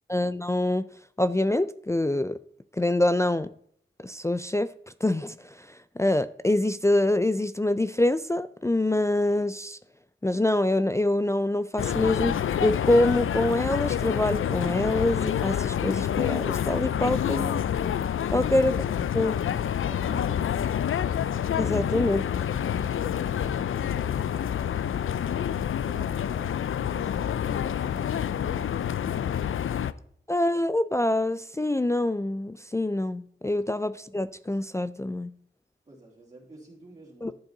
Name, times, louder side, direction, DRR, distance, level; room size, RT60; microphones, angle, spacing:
voice 1, 0.1-0.9 1.2-2.4 2.7-3.5 4.0-4.7 5.0-9.8 10.2-17.6 18.3-18.7 19.1-19.4 21.6-22.3 30.3-35.3 37.2-37.3, left 1 dB, 15° left, 0.3 m, -25 dB
sound 1, 11.8-29.9, left 9 dB, 85° left, 0.4 m, -28 dB
voice 2, 19.8-21.1 22.4-25.6 25.8-29.3 35.9-37.3, right 2 dB, 35° right, 2.8 m, -49 dB
11.5 x 7.0 x 3.9 m
wide cardioid pair, 60°, 20 cm